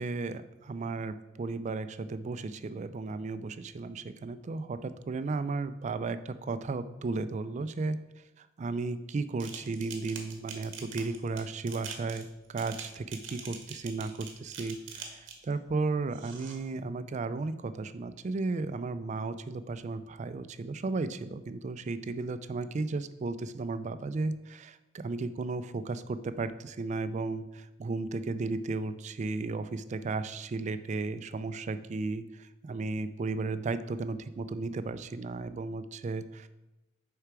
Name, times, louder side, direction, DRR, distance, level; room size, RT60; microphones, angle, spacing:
voice 1, 0.0-8.0 8.4-15.1 15.5-36.5, right 3 dB, 40° right, 12 dB, 0.3 m, -34 dB
sound 1, 9.4-15.5 16.1-16.6, right 6 dB, 85° right, 1.1 m, -44 dB
6.6 x 4.8 x 4.6 m, 0.99 s
head